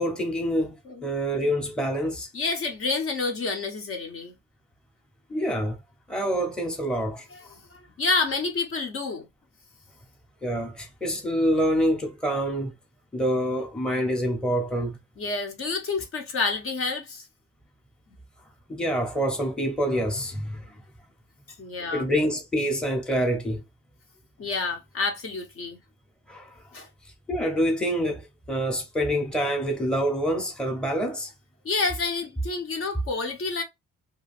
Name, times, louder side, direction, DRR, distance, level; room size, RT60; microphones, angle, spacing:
voice 1, 0.0-2.3 5.3-5.8 6.1-7.3 10.4-12.7 13.1-15.0 18.7-20.8 21.9-23.6 26.3-26.6 27.3-31.3, equal, 5° left, 0.8 m, -26 dB
voice 2, 2.3-4.3 7.3-7.4 7.7-9.3 15.2-17.2 21.6-22.0 24.4-25.8 26.7-26.9 31.6-33.6, left 4 dB, 45° left, 0.8 m, -29 dB
2.4 x 2.2 x 3.3 m
cardioid pair, 90°, 30 cm